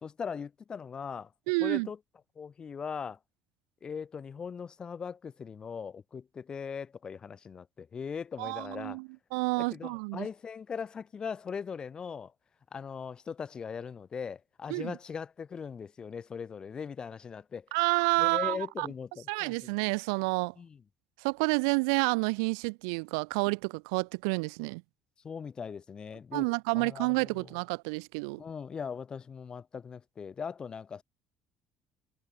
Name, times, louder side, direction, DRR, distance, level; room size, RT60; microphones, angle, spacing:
voice 1, 0.0-1.3 1.6-2.0 2.3-3.2 3.8-9.0 9.6-12.3 12.7-17.7 18.2-19.7 20.6-20.8 25.2-27.6 28.4-31.0, left 6 dB, 35° left, 1.4 m, -40 dB
voice 2, 1.5-1.9 8.4-10.3 14.7-14.9 17.7-18.9 19.3-20.5 21.2-24.8 26.3-28.4, right 33 dB, 90° right, 0.4 m, -29 dB
supercardioid pair, 85°, 2 cm